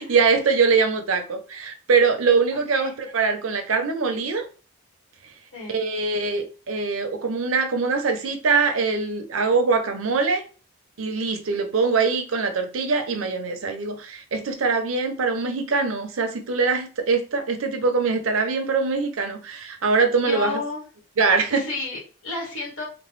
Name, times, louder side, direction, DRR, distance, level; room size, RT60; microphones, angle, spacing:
voice 1, 0.0-4.4 5.7-10.4 11.0-20.6 21.2-21.7, right 4 dB, 85° right, 0.6 m, -23 dB
voice 2, 2.5-2.9 5.5-5.8 20.2-20.8 21.5-22.8, left 3 dB, 85° left, 1.3 m, -32 dB
2.9 x 2.1 x 3.1 m
head